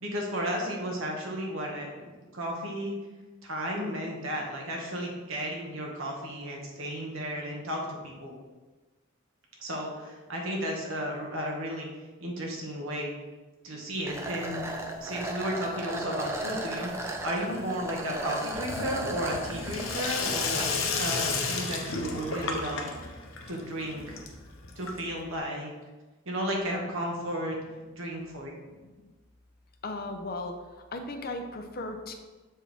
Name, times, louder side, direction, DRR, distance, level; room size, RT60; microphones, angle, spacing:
voice 1, 0.0-3.0 3.4-8.3 9.6-11.9 12.2-13.1 13.6-14.6 15.0-16.9 17.2-22.9 23.5-24.2 24.8-25.7 26.2-27.6 28.0-28.5, equal, 75° right, -1 dB, 1.4 m, -33 dB
sound 1, 14.1-20.7, right 1 dB, 15° right, 0.5 m, -36 dB
Sink (filling or washing), 18.5-25.3, left 4 dB, 80° left, 0.8 m, -33 dB
voice 2, 28.8-29.1 29.8-30.5 30.9-32.1, left 2 dB, 45° left, 5 dB, 0.6 m, -36 dB
7.1 x 4.5 x 3.5 m, 1.2 s
head